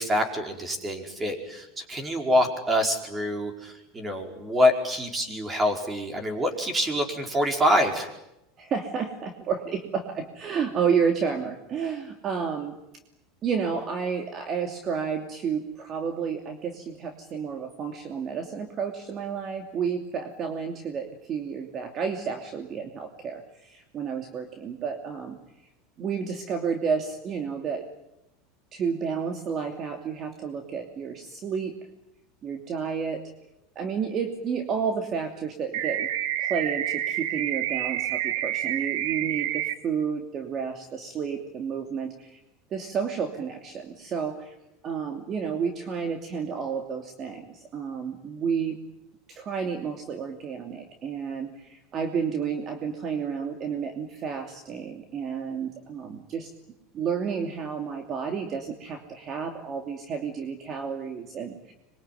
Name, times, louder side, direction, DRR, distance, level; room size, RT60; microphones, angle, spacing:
voice 1, 0.0-8.1, left 1 dB, 15° right, 5 dB, 5.0 m, -26 dB
voice 2, 8.6-12.7 13.4-25.4 26.0-27.9 28.7-31.7 32.4-33.2 33.7-36.1 36.4-42.4 42.7-44.5 44.8-48.8 49.3-56.5 56.9-61.7, right 6 dB, 35° right, 4 dB, 2.8 m, -31 dB
sound 1, 35.7-39.7, right 12 dB, 70° right, 1.7 m, -28 dB
26.0 x 23.0 x 9.4 m, 0.90 s
supercardioid pair, 130°, 0 cm